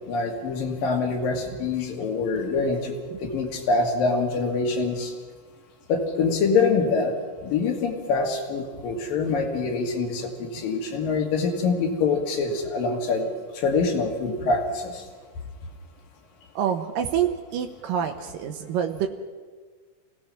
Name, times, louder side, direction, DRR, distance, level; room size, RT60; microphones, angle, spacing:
voice 1, 0.1-2.9 3.2-5.1 5.9-7.2 7.4-15.1, left 4 dB, 75° left, 2 dB, 4.1 m, -25 dB
voice 2, 16.6-19.1, right 9 dB, 80° right, 6 dB, 2.7 m, -27 dB
29.0 x 17.5 x 5.9 m, 1.5 s
omnidirectional pair, 4.0 m